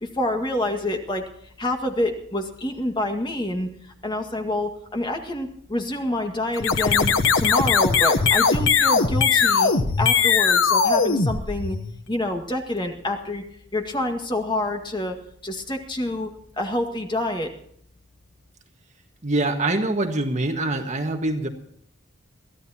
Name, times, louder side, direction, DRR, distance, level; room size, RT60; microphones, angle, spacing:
voice 1, 0.0-1.2 1.6-3.7 4.0-9.7 10.0-11.8 12.1-13.4 13.7-15.2 15.4-16.3 16.6-17.5, left 1 dB, 25° left, 3 dB, 1.9 m, -27 dB
sound 1, 6.5-12.0, left 5 dB, 80° left, 1.0 m, -20 dB
voice 2, 19.2-21.5, right 2 dB, 35° right, 4 dB, 1.6 m, -24 dB
23.0 x 14.5 x 2.9 m, 0.66 s
head